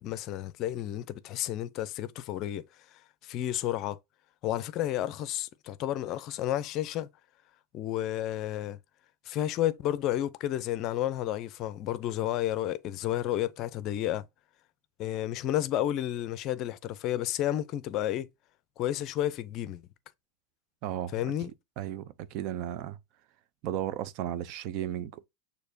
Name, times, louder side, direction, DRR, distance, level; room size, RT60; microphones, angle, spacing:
voice 1, 0.0-2.6 2.9-4.0 4.4-7.1 7.7-8.8 9.3-14.2 15.0-18.3 18.8-19.8 21.1-21.5, left 12 dB, 45° left, 0.6 m, -31 dB
voice 2, 20.8-21.2 21.8-23.0 23.6-25.3, right 11 dB, 50° right, 0.5 m, -34 dB
6.5 x 2.8 x 2.7 m
hypercardioid pair, 115°, 0 cm